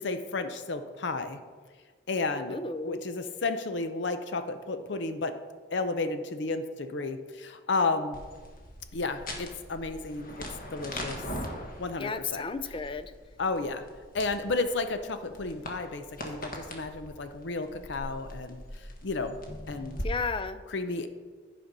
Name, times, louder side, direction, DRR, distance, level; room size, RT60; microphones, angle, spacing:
voice 1, 0.0-1.4 2.1-2.6 2.8-5.3 5.7-8.2 8.9-11.2 11.8-12.5 13.4-13.8 14.1-18.6 19.0-19.4 19.7-20.0 20.7-21.1, left 3 dB, 65° left, 9 dB, 0.6 m, -32 dB
voice 2, 2.5-3.0 12.0-13.1 20.0-20.6, left 4 dB, 25° left, 11 dB, 0.4 m, -33 dB
sound 1, 8.1-20.0, left 1 dB, 45° left, 1.5 m, -42 dB
11.5 x 5.2 x 5.3 m, 1.5 s
head